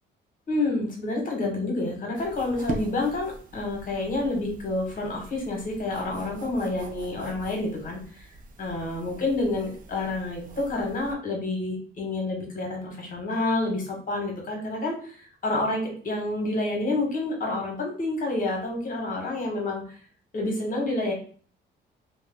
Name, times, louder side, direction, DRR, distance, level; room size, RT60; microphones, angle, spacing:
voice 1, 0.5-8.3 8.6-20.0 20.3-21.1, left 2 dB, 45° left, 0 dB, 1.2 m, -29 dB
sound 1, 2.1-11.1, right 3 dB, 45° right, 0.6 m, -43 dB
2.5 x 2.2 x 3.4 m, 0.44 s
cardioid pair, 90°, 20 cm